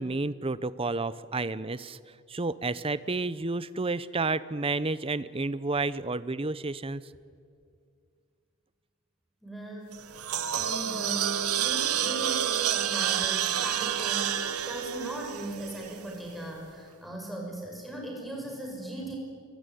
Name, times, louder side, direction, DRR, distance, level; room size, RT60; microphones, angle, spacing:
voice 1, 0.0-2.0 2.3-7.0, right 3 dB, 25° right, 16 dB, 0.7 m, -30 dB
voice 2, 9.4-10.3 10.5-14.4 14.7-19.2, right 1 dB, ahead, -1 dB, 5.9 m, -38 dB
sound 1, 9.9-16.2, right 10 dB, 85° right, 1.3 m, -29 dB
24.5 x 22.5 x 9.3 m, 2.3 s
head